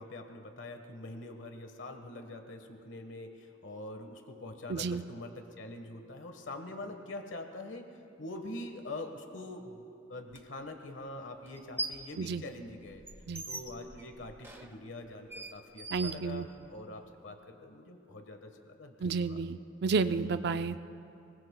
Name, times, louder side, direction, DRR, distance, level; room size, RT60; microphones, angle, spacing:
voice 1, 0.0-9.8 10.1-13.0 13.4-19.4, left 2 dB, 75° left, 5 dB, 1.2 m, -44 dB
voice 2, 4.7-5.0 12.2-12.4 13.3-13.4 15.9-16.5 19.0-20.8, right 4 dB, 60° right, 11 dB, 0.5 m, -31 dB
sound 1, 10.3-10.4 11.5-12.1 12.5-16.9, right 2 dB, 15° right, 0.8 m, -42 dB
30.0 x 20.5 x 2.2 m, 2.7 s
head